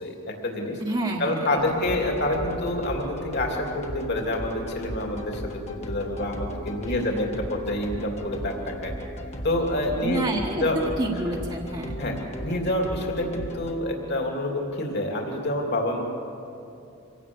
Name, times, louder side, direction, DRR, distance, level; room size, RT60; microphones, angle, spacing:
voice 1, 0.0-0.8 1.2-8.9 9.4-10.2 10.5-10.8 12.0-12.1 12.4-16.0, left 1 dB, 50° left, 1 dB, 2.9 m, -27 dB
voice 2, 0.8-1.6 1.9-2.0 6.9-7.2 10.0-11.9, right 2 dB, 25° right, -3 dB, 1.4 m, -29 dB
sound 1, 1.6-13.7, equal, 30° left, 1.6 m, -36 dB
25.0 x 17.0 x 7.2 m, 2.7 s
head